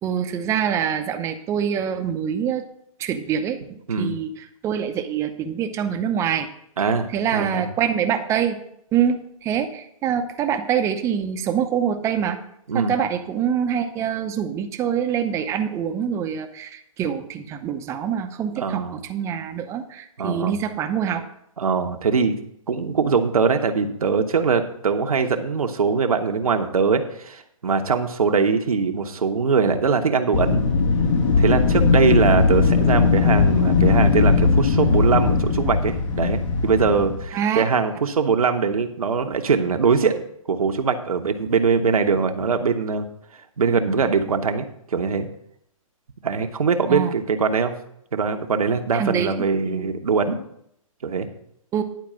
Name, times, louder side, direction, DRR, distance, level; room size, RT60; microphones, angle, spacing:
voice 1, 0.0-2.6 3.0-6.5 6.8-8.6 8.9-12.4 12.7-18.8 19.1-21.2 37.3-37.6 46.9-47.1 48.9-49.9 51.7-51.8, right 8 dB, 15° right, 7 dB, 0.7 m, -25 dB
voice 2, 6.8-7.7 12.7-12.9 18.6-19.0 20.2-20.5 21.6-22.3 22.7-30.6 31.4-43.1 43.6-44.6 44.9-45.3 46.2-47.7 48.1-50.4 51.0-51.3, right 5 dB, 85° right, 6 dB, 1.2 m, -22 dB
Wind, 30.3-37.3, left 4 dB, 60° left, 2.2 m, -19 dB
10.5 x 4.7 x 7.5 m, 0.72 s
hypercardioid pair, 145°, 18 cm